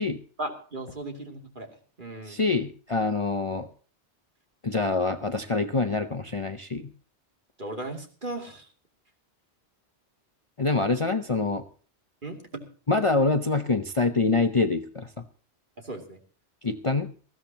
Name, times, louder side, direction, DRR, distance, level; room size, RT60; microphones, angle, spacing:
voice 1, 0.4-1.7 2.0-2.4 7.6-8.7 12.2-12.7 15.8-16.2, right 1 dB, 45° right, 3 dB, 2.9 m, -36 dB
voice 2, 2.3-3.7 4.6-6.9 10.6-11.6 12.9-15.2 16.6-17.1, left 3 dB, 35° left, 8 dB, 0.7 m, -25 dB
20.0 x 15.0 x 2.9 m, 0.40 s
omnidirectional pair, 1.1 m